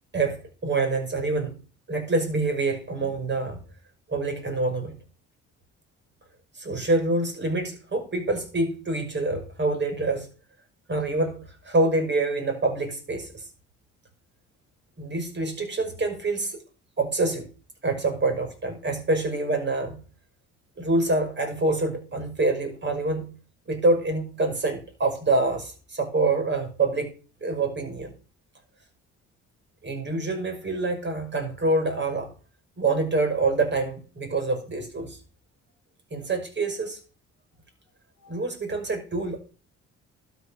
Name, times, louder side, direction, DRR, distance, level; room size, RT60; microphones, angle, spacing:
voice 1, 0.1-1.6 1.9-3.6 4.1-5.0 6.6-10.3 10.9-13.3 15.0-16.6 17.0-17.5 17.8-20.0 20.8-23.3 23.7-27.1 27.4-28.1 29.8-32.3 32.8-35.2 36.1-37.0 38.2-39.4, right 2 dB, 35° right, 5.9 m, -26 dB
12.5 x 7.6 x 6.7 m
cardioid pair, 90°, 30 cm